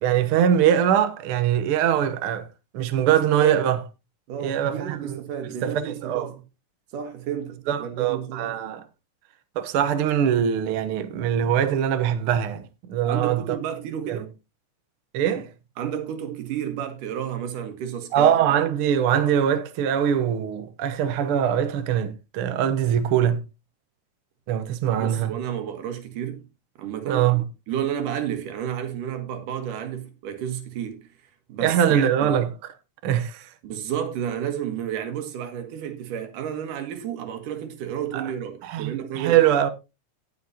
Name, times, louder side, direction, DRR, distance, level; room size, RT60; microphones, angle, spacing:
voice 1, 0.0-2.5 2.7-3.8 4.4-5.2 5.4-6.3 7.7-8.8 9.5-13.6 14.1-14.2 15.1-15.5 18.1-23.4 24.5-25.3 27.1-27.4 31.6-32.5 33.0-33.5 38.1-38.3 38.6-39.7, right 9 dB, 70° right, 1.3 m, -22 dB
voice 2, 3.1-3.6 4.3-6.3 6.9-8.5 13.0-14.3 15.8-18.3 25.0-26.4 26.8-27.3 27.7-31.1 31.5-32.4 33.6-39.4, right 9 dB, 85° right, 3.1 m, -31 dB
18.0 x 6.5 x 2.8 m
omnidirectional pair, 3.6 m